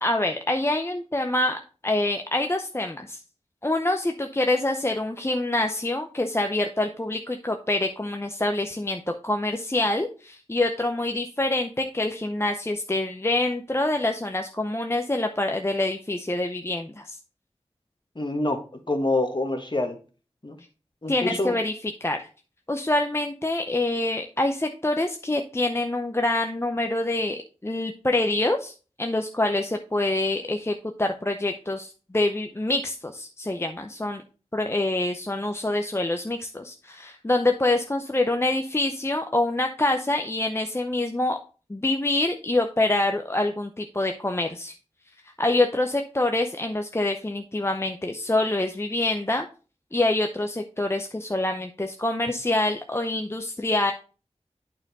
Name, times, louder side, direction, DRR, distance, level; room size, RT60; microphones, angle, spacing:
voice 1, 0.0-3.2 3.6-17.2 21.1-21.7 22.0-22.3 22.7-28.7 29.0-34.2 34.5-41.4 41.7-44.7 45.4-49.5 49.9-53.9, left 2 dB, 20° left, 4 dB, 0.6 m, -26 dB
voice 2, 18.1-18.6 18.9-20.0 20.4-20.6 21.0-21.6, left 2 dB, 40° left, 5 dB, 1.5 m, -26 dB
8.6 x 4.4 x 4.1 m, 0.36 s
wide cardioid pair, 40°, 12 cm